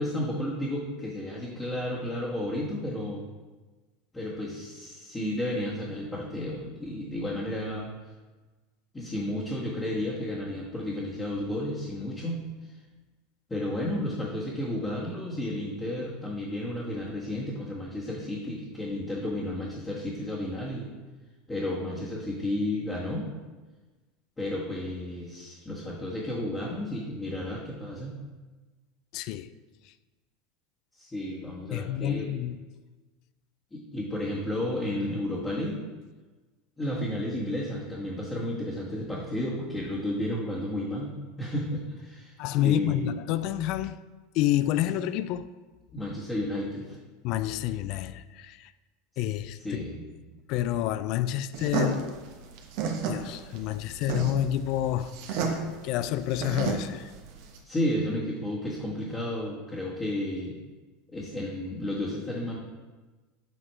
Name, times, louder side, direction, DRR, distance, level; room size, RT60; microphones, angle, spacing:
voice 1, 0.0-3.2 4.1-7.9 8.9-12.7 13.5-20.9 21.5-23.3 24.4-28.1 31.0-32.3 33.7-35.8 36.8-41.1 41.4-43.1 45.9-47.0 49.6-50.0 57.6-60.5 61.1-62.6, left 1 dB, 15° left, 1.6 m, -32 dB
voice 2, 29.1-29.5 31.7-32.6 42.4-44.0 44.3-45.5 47.2-48.7 49.2-49.8 50.5-52.1 53.1-55.6 55.8-57.1, left 12 dB, 60° left, 0.3 m, -29 dB
sound 1, 51.5-57.6, right 5 dB, 65° right, 1.1 m, -32 dB
7.8 x 4.1 x 4.5 m
hypercardioid pair, 100°, 0 cm